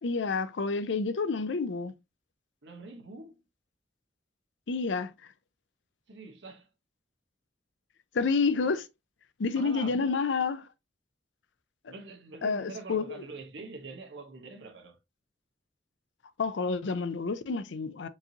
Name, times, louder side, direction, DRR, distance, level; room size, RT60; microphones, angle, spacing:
voice 1, 0.0-1.9 4.7-5.1 8.1-8.9 9.4-10.6 12.4-13.2 16.4-18.1, left 4 dB, 90° left, 0.5 m, -29 dB
voice 2, 2.6-3.4 6.1-6.7 9.5-10.2 11.9-15.0, right 3 dB, 75° right, 1.1 m, -44 dB
4.6 x 2.7 x 2.9 m
head